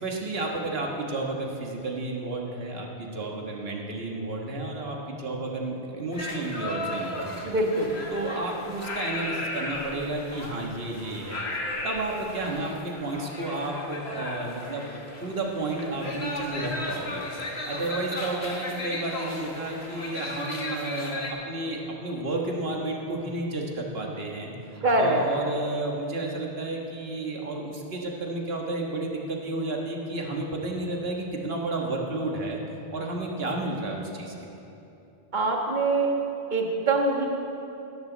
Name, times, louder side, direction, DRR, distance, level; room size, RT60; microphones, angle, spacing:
voice 1, 0.0-7.5 8.1-11.4 11.8-14.8 15.2-17.2 17.5-32.6 32.9-34.5, right 2 dB, 70° right, 0 dB, 1.8 m, -32 dB
sound 1, 6.1-21.3, left 2 dB, 80° left, 1.9 m, -35 dB
voice 2, 7.4-7.9 24.8-25.2 35.3-36.1 36.5-37.3, right 2 dB, 45° right, 0 dB, 1.6 m, -23 dB
17.0 x 13.5 x 4.0 m, 2.9 s
omnidirectional pair, 1.1 m